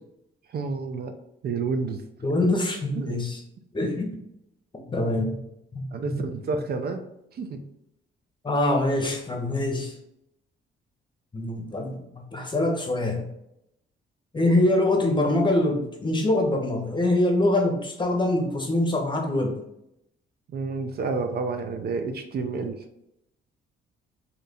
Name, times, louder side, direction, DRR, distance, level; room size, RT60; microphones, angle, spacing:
voice 1, 0.5-1.1 1.4-2.0 2.9-3.2 5.9-7.0 7.3-7.6 20.5-22.8, right 4 dB, 50° right, 7 dB, 0.5 m, -29 dB
voice 2, 2.2-3.4 3.7-4.1 4.9-5.4 5.7-6.2 8.4-9.9 11.3-11.9 12.3-13.3 14.3-19.6, left 1 dB, 25° left, 2 dB, 0.9 m, -24 dB
3.2 x 2.8 x 4.1 m, 0.81 s
cardioid pair, 90°, 20 cm